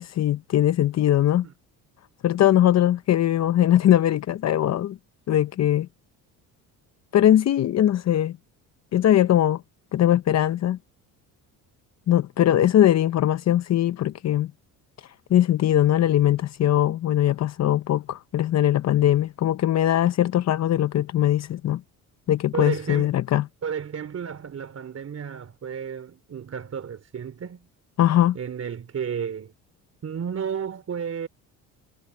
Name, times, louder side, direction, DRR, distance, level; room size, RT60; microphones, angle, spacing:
voice 1, 0.0-1.5 2.2-5.0 5.3-5.9 7.1-8.4 8.9-9.6 9.9-10.8 12.1-14.5 15.0-21.8 22.3-23.5 28.0-28.4, left 12 dB, 45° left, 0.7 m, -21 dB
voice 2, 22.5-23.1 23.6-27.7 28.3-29.5 30.0-31.3, right 7 dB, 40° right, 3.2 m, -32 dB
cardioid pair, 100°, 38 cm